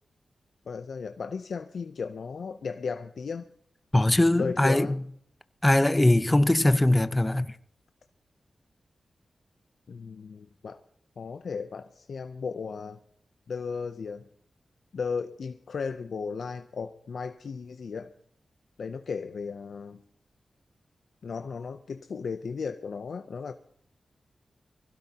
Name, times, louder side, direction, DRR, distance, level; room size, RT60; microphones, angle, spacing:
voice 1, 0.7-3.5 4.3-5.0 9.9-10.8 11.2-13.0 13.5-14.3 14.9-18.1 18.8-20.0 21.2-23.5, left 5 dB, 75° left, 0.5 m, -35 dB
voice 2, 3.9-5.0 5.6-7.5, left 1 dB, 15° left, 0.7 m, -21 dB
23.5 x 16.5 x 2.8 m
cardioid pair, 70°, 0 cm